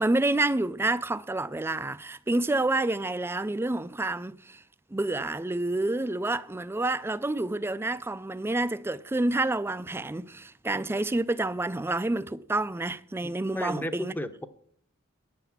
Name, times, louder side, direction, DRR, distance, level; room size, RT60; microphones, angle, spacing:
voice 1, 0.0-4.6 4.9-14.1, right 2 dB, 10° right, 0.4 m, -28 dB
voice 2, 13.2-14.5, left 1 dB, 10° left, 0.7 m, -34 dB
10.0 x 8.0 x 7.2 m
head